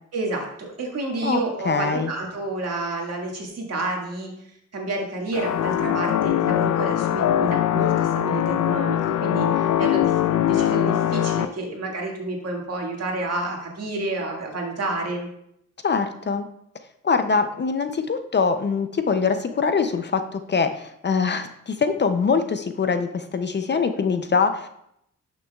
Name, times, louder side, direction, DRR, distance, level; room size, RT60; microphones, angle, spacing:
voice 1, 0.1-4.3 4.7-15.3, right 2 dB, 60° right, 0 dB, 1.9 m, -29 dB
voice 2, 1.2-2.1 15.8-16.5 17.0-24.7, left 5 dB, 40° left, 8 dB, 0.5 m, -23 dB
sound 1, 5.3-11.4, left 11 dB, 90° left, 0.5 m, -22 dB
11.5 x 6.2 x 2.3 m, 0.74 s
cardioid pair, 105°, 29 cm